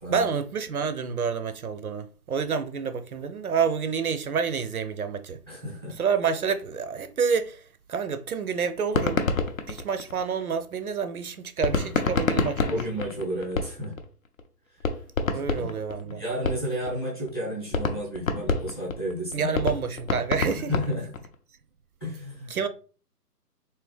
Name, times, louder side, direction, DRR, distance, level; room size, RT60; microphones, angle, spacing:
voice 1, 0.1-5.4 6.0-7.6 7.9-9.2 9.7-12.8 15.3-16.2 19.3-20.7 22.5-22.7, right 6 dB, 65° right, 0.5 m, -28 dB
voice 2, 5.5-6.0 12.7-13.9 15.3-15.7 16.0-19.5 20.6-21.2 22.0-22.6, equal, 15° left, 0.7 m, -32 dB
sound 1, 8.9-10.6 11.6-14.0 14.4-14.5 14.8-16.9 17.3-17.4 17.7-21.3, left 4 dB, 55° left, 0.7 m, -27 dB
3.4 x 2.8 x 3.2 m
hypercardioid pair, 160°, 49 cm